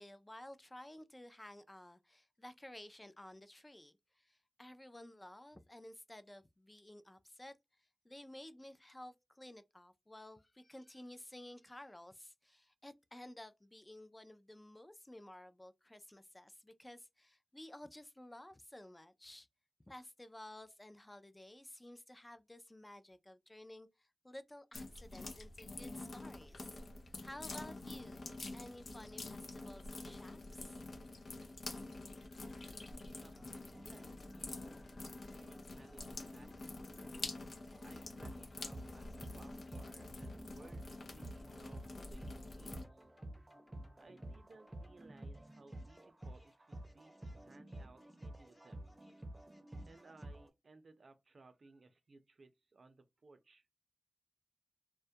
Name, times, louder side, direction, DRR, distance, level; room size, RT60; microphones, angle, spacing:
voice 1, 0.0-7.5 7.8-19.5 19.9-26.8 27.2-28.2 28.5-30.8, left 1 dB, 20° left, 0.3 m, -54 dB
sound 1, 24.7-42.8, left 2 dB, 85° left, 0.5 m, -47 dB
sound 2, 32.0-50.4, left 1 dB, 40° left, 0.9 m, -66 dB
voice 2, 33.2-34.1 35.3-37.1 37.8-43.0 44.0-48.9 49.9-53.7, right 3 dB, 70° right, 0.5 m, -62 dB
sound 3, 33.7-50.5, right 1 dB, 25° right, 0.6 m, -52 dB
2.2 x 2.1 x 2.7 m
wide cardioid pair, 80°, 0 cm